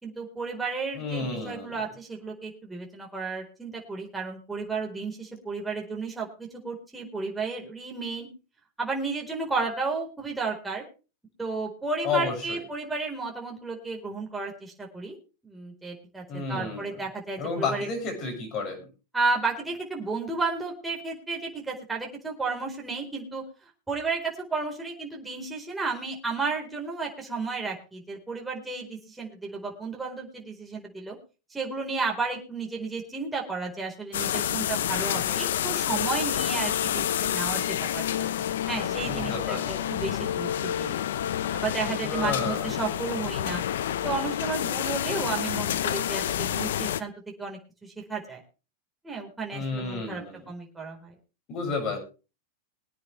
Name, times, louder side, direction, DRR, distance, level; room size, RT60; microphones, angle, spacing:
voice 1, 0.0-8.3 8.8-10.8 11.4-15.2 15.4-17.9 19.1-23.4 23.9-31.2 31.5-38.3 38.7-39.6 39.9-40.9 41.5-43.6 44.0-47.1 47.4-48.4 49.0-50.2 50.5-51.1, right 4 dB, 10° right, 0 dB, 4.3 m, -33 dB
voice 2, 0.9-1.8 12.0-12.6 16.3-16.9 17.4-18.9 39.0-39.8 42.0-42.7 49.5-50.5 51.5-52.0, left 4 dB, 40° left, 5 dB, 6.9 m, -31 dB
sound 1, 34.1-47.0, left 10 dB, 75° left, 0.8 m, -28 dB
22.0 x 9.5 x 3.3 m, 0.33 s
hypercardioid pair, 115°, 0 cm